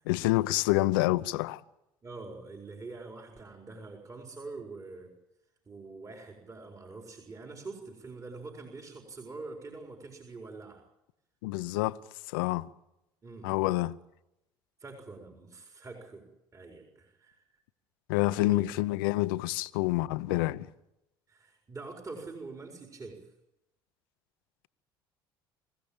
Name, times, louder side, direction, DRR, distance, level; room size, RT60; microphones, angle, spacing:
voice 1, 0.1-1.6 11.4-12.0 12.3-12.7 13.4-14.0 18.1-20.7, left 19 dB, 80° left, 0.8 m, -27 dB
voice 2, 2.0-5.1 5.7-10.8 13.2-13.5 14.8-17.6 18.3-18.6 21.3-23.3, right 3 dB, 30° right, 4.6 m, -45 dB
26.0 x 15.5 x 8.8 m
hypercardioid pair, 70°, 11 cm